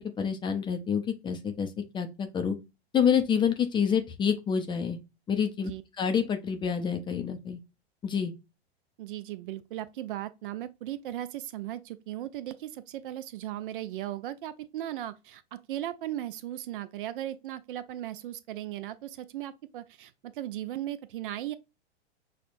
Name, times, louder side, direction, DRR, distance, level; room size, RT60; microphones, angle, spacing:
voice 1, 0.0-2.6 2.9-5.0 5.3-5.7 6.0-7.6 8.0-8.3, left 7 dB, 15° left, 0.4 m, -28 dB
voice 2, 9.0-21.5, right 13 dB, 55° right, 0.5 m, -37 dB
6.3 x 2.1 x 2.5 m
figure-of-eight pair, 100°, 32 cm